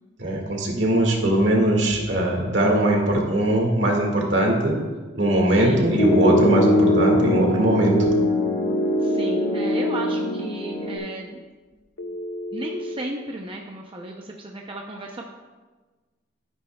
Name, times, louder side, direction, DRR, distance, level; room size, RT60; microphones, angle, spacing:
voice 1, 0.2-4.8 5.1-8.0, right 1 dB, 65° right, 0 dB, 2.0 m, -20 dB
voice 2, 5.5-6.0 9.0-11.4 12.5-15.3, right 1 dB, 30° right, 1 dB, 0.6 m, -34 dB
Piano, 6.0-11.0, left 1 dB, 45° left, 1.6 m, -22 dB
Telephone, 6.1-7.1 9.0-10.1 12.0-13.0, left 1 dB, 65° left, 0.8 m, -33 dB
13.0 x 9.6 x 2.3 m, 1.3 s
head